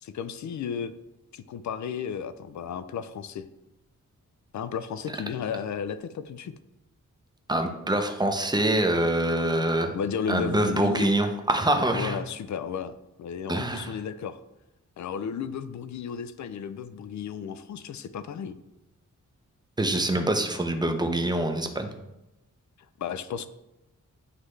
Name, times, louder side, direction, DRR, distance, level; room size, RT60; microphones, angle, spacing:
voice 1, 0.0-0.9 1.3-3.5 4.5-6.5 9.9-11.1 11.9-14.4 15.0-18.6 23.0-23.5, left 7 dB, 65° left, 13 dB, 0.4 m, -33 dB
voice 2, 7.5-9.9 10.3-12.2 13.5-13.9 19.8-21.9, right 1 dB, 15° right, 5 dB, 0.6 m, -25 dB
9.5 x 3.2 x 3.1 m, 0.95 s
wide cardioid pair, 130°, 32 cm